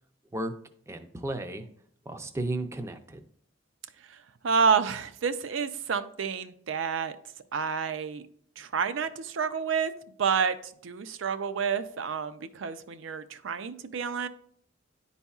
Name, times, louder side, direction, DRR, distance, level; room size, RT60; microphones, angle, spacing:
voice 1, 0.9-1.7 2.1-3.2, right 2 dB, 15° right, 8 dB, 0.4 m, -34 dB
voice 2, 4.4-7.2 7.5-8.2 8.6-9.9 10.2-14.3, right 6 dB, 75° right, 11 dB, 0.5 m, -29 dB
10.5 x 4.1 x 2.4 m, 0.63 s
head